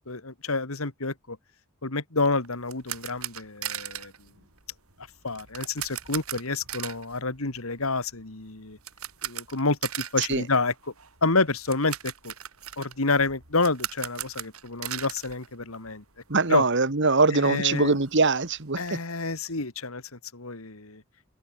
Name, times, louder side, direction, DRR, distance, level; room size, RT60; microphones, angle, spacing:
voice 1, 0.0-1.4 1.8-4.1 5.2-8.8 9.2-10.7 11.2-12.3 12.8-16.0 16.5-16.6 17.4-18.0 18.8-20.0 20.3-21.0, left 3 dB, 70° left, 2.4 m, -28 dB
sound 1, 2.2-16.2 16.5-16.6 17.0-17.1 17.4-18.9, right 11 dB, 80° right, 7.2 m, -39 dB
voice 2, 16.3-19.0, right 3 dB, 55° right, 1.6 m, -22 dB
head